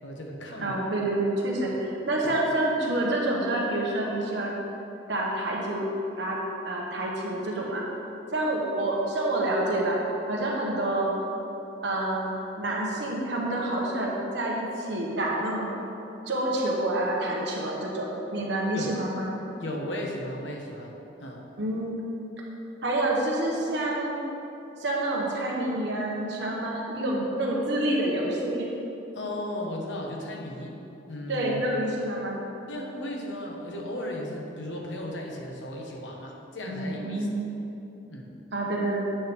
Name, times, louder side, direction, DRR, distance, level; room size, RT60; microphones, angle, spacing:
voice 1, 0.0-0.9 2.2-2.4 18.7-18.9 19.6-21.4 29.1-30.8 31.1-31.6 32.7-37.3 38.1-38.3, left 1 dB, 85° left, -1 dB, 1.1 m, -36 dB
voice 2, 0.6-4.6 5.1-5.9 6.2-6.4 6.6-7.8 8.3-11.1 11.8-15.7 16.3-19.3 21.6-22.0 22.8-24.2 24.8-28.7 31.3-32.4 36.7-37.4 38.5-39.0, right 1 dB, 70° right, -3 dB, 1.3 m, -28 dB
8.6 x 3.7 x 6.0 m, 2.9 s
head